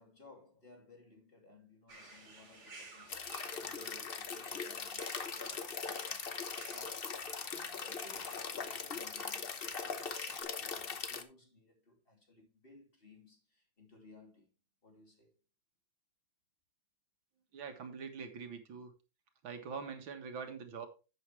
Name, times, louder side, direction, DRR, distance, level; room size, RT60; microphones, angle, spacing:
voice 1, 0.0-3.2 3.5-14.5 14.8-15.3, left 2 dB, 30° left, 2.8 m, -60 dB
sound 1, 1.9-10.4, right 3 dB, 55° right, 3.6 m, -55 dB
sound 2, 3.1-11.2, left 5 dB, 45° left, 0.8 m, -40 dB
voice 2, 17.5-18.9 19.4-20.9, right 5 dB, 85° right, 2.4 m, -44 dB
11.0 x 8.2 x 3.3 m
omnidirectional pair, 2.1 m